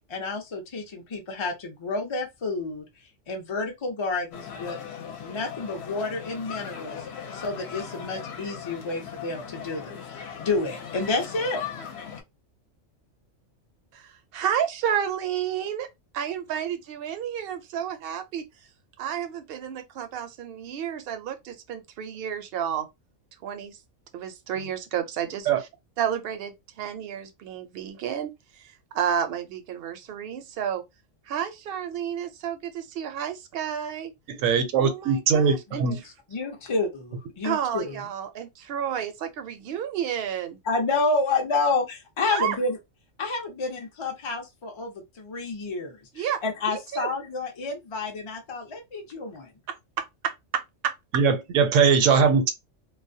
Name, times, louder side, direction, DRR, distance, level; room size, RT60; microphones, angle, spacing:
voice 1, 0.1-2.9 3.3-4.8 5.2-7.1 7.3-11.6 35.8-36.0 36.3-38.0 40.7-42.8 43.2-49.5, left 3 dB, 45° left, 0.4 m, -29 dB
sound 1, 4.3-12.2, left 7 dB, 65° left, 0.8 m, -39 dB
voice 2, 13.9-15.9 16.1-18.5 19.0-22.9 23.4-23.8 24.1-25.7 26.0-28.3 28.6-30.8 31.3-34.1 34.8-35.8 37.4-40.6 42.3-42.6 46.2-46.4 46.7-47.1 49.7-50.0 50.8-50.9 51.9-52.0, right 9 dB, 60° right, 0.6 m, -31 dB
voice 3, 34.3-36.0 51.1-52.5, right 6 dB, 75° right, 1.0 m, -21 dB
2.3 x 2.1 x 2.6 m
omnidirectional pair, 1.3 m